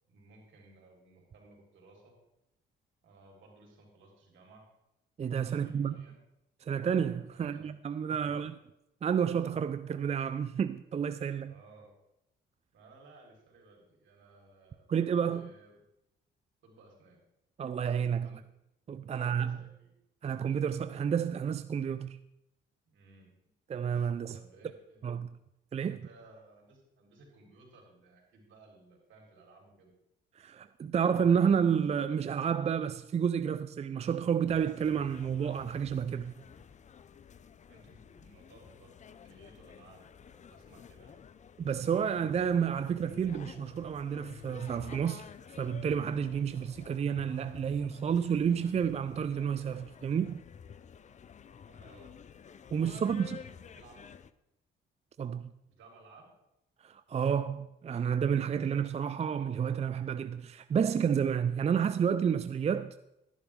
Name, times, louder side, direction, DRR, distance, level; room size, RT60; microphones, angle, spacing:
voice 1, 0.1-2.2 3.0-4.6 5.5-6.2 7.3-7.7 8.1-8.5 11.4-11.9 12.7-15.8 16.6-17.2 18.2-18.4 18.9-19.9 22.8-23.3 24.3-25.1 25.9-29.9 37.7-41.2 51.6-52.1 52.9-54.1 55.7-56.3, right 3 dB, 70° right, 4.2 m, -58 dB
voice 2, 5.2-6.0 6.6-8.5 9.0-11.5 14.9-15.5 17.6-18.3 18.9-19.6 20.2-22.2 23.7-24.4 25.0-25.3 25.7-26.0 30.4-36.3 41.6-45.2 45.6-50.4 52.7-53.4 55.2-55.5 56.8-62.9, right 7 dB, 35° right, 0.4 m, -30 dB
sound 1, 34.5-54.3, left 7 dB, 35° left, 0.5 m, -51 dB
12.5 x 11.0 x 3.7 m
cardioid pair, 90°, 20 cm